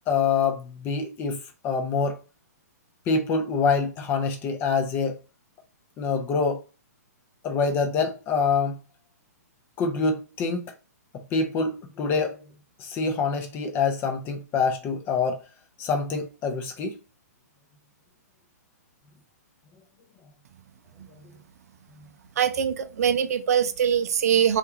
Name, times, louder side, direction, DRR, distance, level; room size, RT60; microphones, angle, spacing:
voice 1, 0.1-2.2 3.1-5.2 6.0-6.6 7.4-8.8 9.8-10.6 11.1-12.4 12.8-15.4 15.8-17.0, left 5 dB, 20° left, 0.5 m, -25 dB
voice 2, 22.4-24.6, right 8 dB, 65° right, 0.4 m, -23 dB
2.4 x 2.2 x 2.9 m
hypercardioid pair, 145°, 9 cm